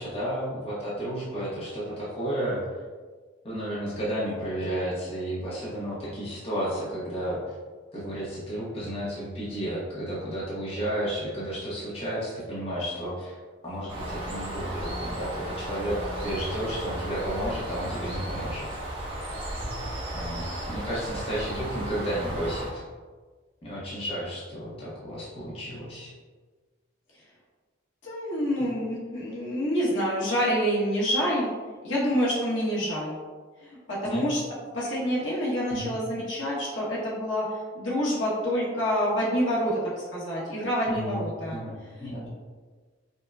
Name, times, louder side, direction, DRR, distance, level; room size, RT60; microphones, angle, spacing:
voice 1, 0.0-2.6 3.4-7.4 7.9-13.3 13.6-18.7 20.1-22.8 23.6-26.1 34.0-34.2 35.7-35.9 40.9-42.3, equal, 30° left, -8 dB, 0.9 m, -32 dB
Bird, 13.9-22.7, right 1 dB, 30° right, 0.9 m, -34 dB
voice 2, 28.0-31.5 31.8-33.1 33.6-34.4 34.7-37.5 37.7-41.6 42.0-42.3, equal, 75° left, -7 dB, 1.3 m, -27 dB
5.1 x 2.2 x 2.5 m, 1.4 s
head